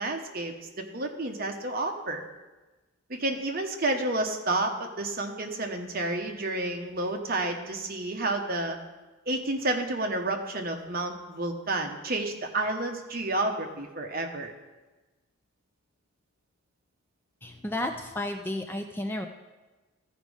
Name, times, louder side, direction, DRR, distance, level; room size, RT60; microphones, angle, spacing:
voice 1, 0.0-2.2 3.1-8.8 9.3-14.5, right 2 dB, 45° right, 4 dB, 0.9 m, -30 dB
voice 2, 17.4-19.3, left 1 dB, 10° left, 5 dB, 0.3 m, -32 dB
14.0 x 5.2 x 4.9 m, 1.2 s
head